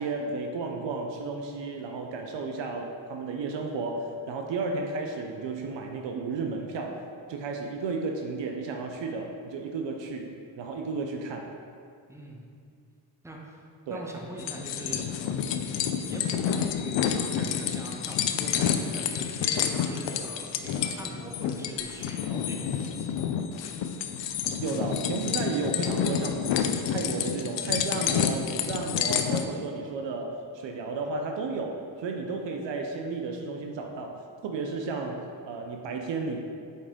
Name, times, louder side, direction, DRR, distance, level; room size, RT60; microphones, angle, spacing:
voice 1, 0.0-7.0 7.3-11.5 13.9-14.0 24.6-36.4, right 3 dB, 65° right, 2 dB, 0.7 m, -33 dB
voice 2, 12.1-12.4 13.2-13.6 13.9-15.7 16.1-23.2, right 1 dB, 5° right, -1 dB, 1.0 m, -42 dB
sound 1, 14.4-29.4, left 8 dB, 65° left, 0.6 m, -29 dB
5.4 x 4.7 x 3.6 m, 2.3 s
hypercardioid pair, 45°, 48 cm